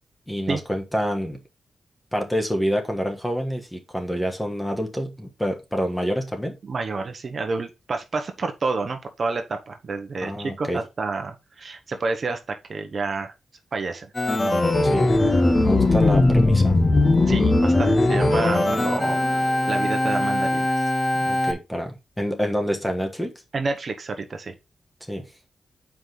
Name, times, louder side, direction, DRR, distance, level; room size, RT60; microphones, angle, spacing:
voice 1, 0.3-1.4 2.1-6.6 10.2-10.8 14.8-15.1 15.6-16.8 21.2-23.3 25.1-25.3, equal, 5° left, 1.3 m, -27 dB
voice 2, 6.6-13.3 13.7-14.1 17.3-20.7 23.5-24.5, right 3 dB, 45° right, 1.0 m, -29 dB
Organ, 14.2-21.5, left 2 dB, 25° left, 0.9 m, -20 dB
7.4 x 4.9 x 3.9 m
wide cardioid pair, 130°, 0 cm